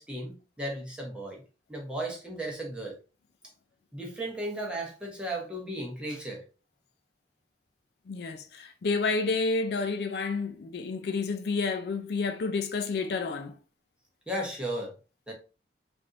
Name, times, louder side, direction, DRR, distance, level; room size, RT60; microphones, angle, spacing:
voice 1, 0.0-1.4 1.7-2.9 3.9-6.4 14.3-14.9 15.3-15.4, right 1 dB, 5° right, 0.8 m, -35 dB
voice 2, 8.1-13.6, left 4 dB, 60° left, 0.4 m, -30 dB
3.3 x 2.5 x 2.6 m
head